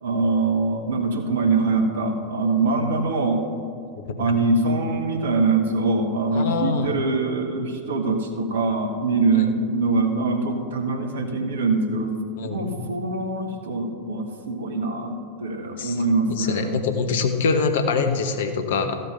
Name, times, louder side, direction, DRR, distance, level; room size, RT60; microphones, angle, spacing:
voice 1, 0.0-3.5 4.2-12.1 12.4-16.8, right 3 dB, 60° right, 5 dB, 1.4 m, -23 dB
voice 2, 6.3-6.9 9.3-9.4 12.4-12.7 15.8-16.0 16.4-19.0, left 4 dB, 55° left, 7 dB, 1.0 m, -24 dB
14.0 x 7.5 x 5.6 m, 2.4 s
figure-of-eight pair, 90°, 0 cm